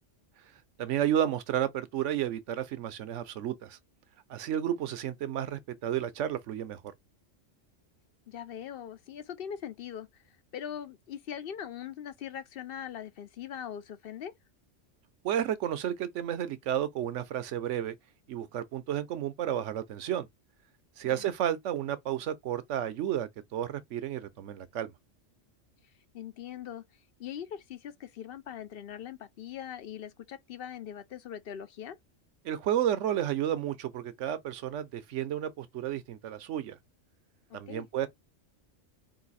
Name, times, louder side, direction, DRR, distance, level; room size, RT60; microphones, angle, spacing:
voice 1, 0.8-3.8 4.3-6.8 15.2-18.0 18.3-20.3 21.0-24.9 32.4-36.8 37.5-38.1, right 10 dB, 75° right, 1.0 m, -32 dB
voice 2, 8.3-14.3 21.0-21.3 26.1-26.8 27.2-32.0 37.5-37.9, left 9 dB, 60° left, 0.7 m, -41 dB
3.9 x 2.6 x 4.1 m
omnidirectional pair, 1.3 m